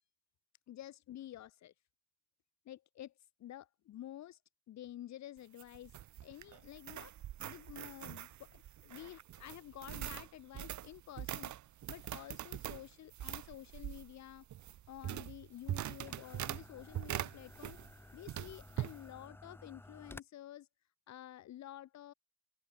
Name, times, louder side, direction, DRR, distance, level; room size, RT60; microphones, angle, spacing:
voice 1, 0.7-1.7 2.6-3.1 3.4-4.4 4.7-5.9 6.2-7.1 7.4-11.5 11.9-14.5 14.9-17.8 18.1-20.7 21.1-22.1, left 12 dB, 70° left, 1.2 m, -50 dB
sound 1, 5.4-18.0 18.3-19.0, right 12 dB, 80° right, 2.4 m, -43 dB
sound 2, 14.6-20.2, left 2 dB, 10° left, 1.3 m, -55 dB
open air
cardioid pair, 155°, 29 cm